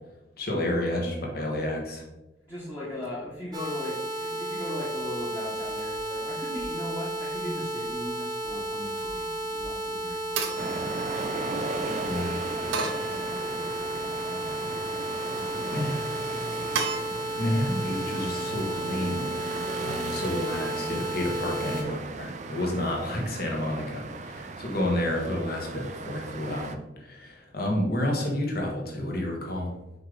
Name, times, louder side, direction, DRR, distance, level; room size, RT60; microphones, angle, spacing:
voice 1, 0.4-2.0 12.1-12.3 15.7-16.1 17.4-29.7, left 1 dB, 50° left, -1 dB, 1.4 m, -30 dB
voice 2, 2.4-15.0 15.2-15.8 16.3-16.8, left 1 dB, 15° left, -8 dB, 1.2 m, -39 dB
sound 1, 3.5-21.8, right 1 dB, 20° right, 0.9 m, -33 dB
sound 2, 9.0-9.5 10.4-11.7 12.7-13.8 14.4-15.0 16.7-17.0, right 5 dB, 85° right, 0.8 m, -35 dB
sound 3, 10.6-26.8, right 3 dB, 35° right, 0.4 m, -37 dB
5.7 x 4.9 x 3.8 m, 1.0 s
head